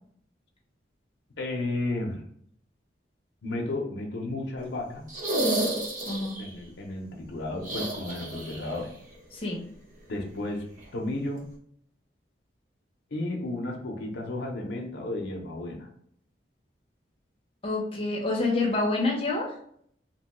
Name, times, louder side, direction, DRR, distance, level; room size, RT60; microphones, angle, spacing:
voice 1, 1.4-2.2 3.4-5.0 6.4-8.9 10.1-10.7 10.9-11.4 13.1-15.9, left 2 dB, 75° left, 0 dB, 0.6 m, -33 dB
sound 1, 5.1-6.5 7.6-8.8 9.0-9.1 10.8-10.9, right 1 dB, 40° right, 0.8 m, -30 dB
voice 2, 17.6-19.5, left 2 dB, 30° left, -1 dB, 0.7 m, -27 dB
2.9 x 2.2 x 2.9 m, 0.64 s
head